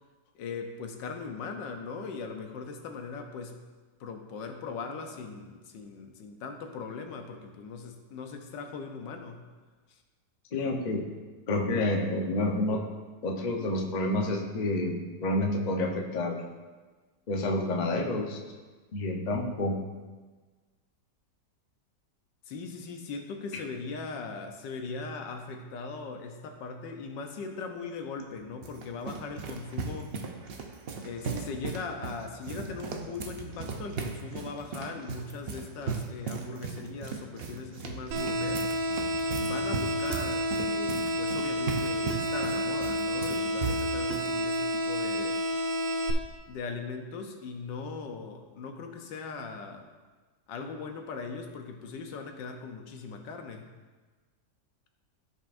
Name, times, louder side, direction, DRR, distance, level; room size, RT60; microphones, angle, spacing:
voice 1, 0.3-3.6 4.0-9.4 9.9-10.0 22.5-30.1 31.0-38.7 39.4-45.4 46.5-49.9 50.5-53.6, left 4 dB, 80° left, 4 dB, 1.5 m, -39 dB
voice 2, 10.5-11.0 11.5-12.8 13.2-14.9 15.2-16.4 17.3-18.4 18.9-19.8 23.5-23.6, left 1 dB, 40° left, 1 dB, 0.6 m, -29 dB
sound 1, 28.2-44.3, right 5 dB, 65° right, 0.5 m, -37 dB
sound 2, 38.1-46.1, equal, 80° right, 1.4 m, -30 dB
14.5 x 5.4 x 2.5 m, 1.3 s
omnidirectional pair, 1.9 m